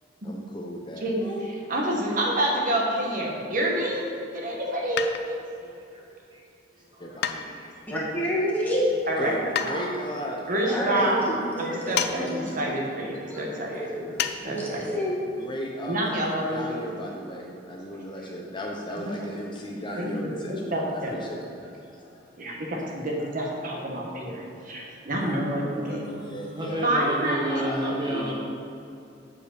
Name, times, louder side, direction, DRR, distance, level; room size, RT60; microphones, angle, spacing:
voice 1, 0.2-1.4 7.0-7.5 9.1-10.5 10.9-11.2 11.6-11.7 15.2-21.5 21.8-22.0 22.7-22.9 25.2-26.9 27.5-28.3, equal, 25° left, -1 dB, 0.7 m, -36 dB
voice 2, 1.7-4.1 4.3-5.8 9.1-9.3 9.6-9.9 10.5-11.2 11.6-14.2 14.4-15.0 15.9-16.8 19.0-19.1 20.0-20.3 20.7-21.2 22.4-26.0 26.8-28.1, right 1 dB, 45° right, -2 dB, 1.2 m, -28 dB
sound 1, 5.0-5.5 7.2-7.9 9.5-9.8 11.9-12.2 12.4-12.5 14.2-14.4 14.7-14.8, left 8 dB, 60° left, 0.4 m, -29 dB
voice 3, 5.9-6.4 6.9-7.2 7.5-7.7 12.5-12.6 13.6-13.7 15.4-15.5 21.4-22.1 26.5-28.3, right 1 dB, 25° right, -3 dB, 1.1 m, -33 dB
voice 4, 7.9-8.9 10.7-12.3 13.3-13.4 13.7-15.2, equal, 10° left, -7 dB, 1.9 m, -29 dB
7.0 x 4.9 x 6.5 m, 2.6 s
head